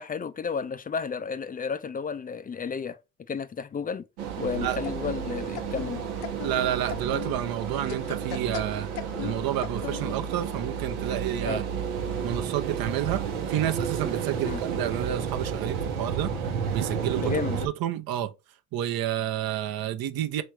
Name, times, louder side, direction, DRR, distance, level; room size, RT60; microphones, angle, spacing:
voice 1, 0.0-3.0 3.3-4.1 4.4-6.0 11.5-11.6 14.4-14.6 17.2-17.7, left 6 dB, 20° left, 0.4 m, -32 dB
sound 1, 4.2-17.7, right 7 dB, 85° right, 1.0 m, -31 dB
sound 2, 4.4-10.3, left 11 dB, 80° left, 0.7 m, -40 dB
voice 2, 6.4-8.9 9.2-11.6 12.2-13.2 13.5-16.3 16.7-17.3 17.6-18.3 18.7-20.4, right 11 dB, 55° right, 0.8 m, -30 dB
3.2 x 3.1 x 4.7 m
hypercardioid pair, 65°, 43 cm